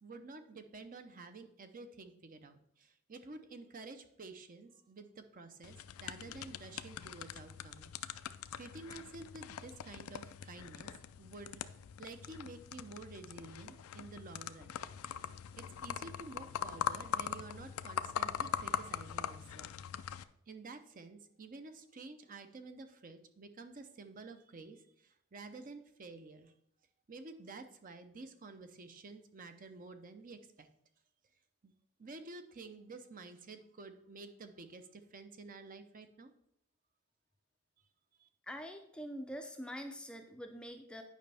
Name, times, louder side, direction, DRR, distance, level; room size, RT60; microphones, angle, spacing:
voice 1, 0.0-7.9 8.6-10.9 11.2-11.6 12.0-14.8 15.6-19.7 20.5-26.5 27.1-30.7 31.6-31.7 32.0-36.3 38.2-38.3, right 3 dB, 40° right, 8 dB, 0.6 m, -51 dB
sound 1, 5.6-20.2, left 8 dB, 85° left, 0.4 m, -42 dB
voice 2, 38.4-41.0, equal, 5° left, 5 dB, 0.5 m, -45 dB
9.2 x 5.3 x 3.4 m, 0.72 s
head